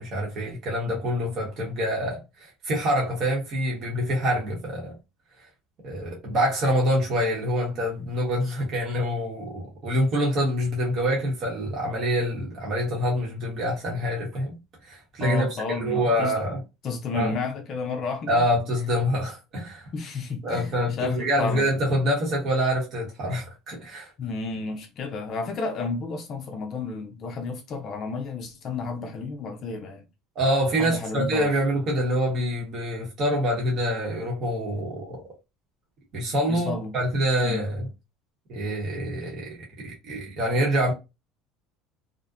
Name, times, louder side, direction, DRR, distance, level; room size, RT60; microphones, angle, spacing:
voice 1, 0.0-5.0 5.8-14.6 14.8-15.5 15.8-16.6 17.1-17.3 18.3-19.9 20.4-24.1 30.4-35.2 36.1-37.9 38.5-39.6 39.8-40.9, equal, 45° right, 0.9 m, -26 dB
voice 2, 15.2-16.4 16.8-18.4 19.9-21.7 24.2-30.0 30.8-31.5 36.5-36.9 37.4-37.6, left 4 dB, 40° left, 0.4 m, -31 dB
2.5 x 2.1 x 2.4 m
cardioid pair, 135°, 0 cm